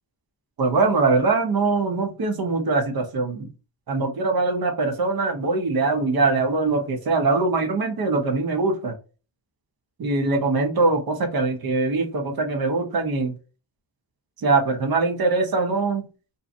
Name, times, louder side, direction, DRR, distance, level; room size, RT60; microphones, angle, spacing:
voice 1, 0.6-3.5 3.9-9.0 10.0-13.3 14.4-16.1, right 3 dB, 55° right, 0.9 m, -22 dB
2.7 x 2.3 x 2.5 m
cardioid pair, 90°, 45 cm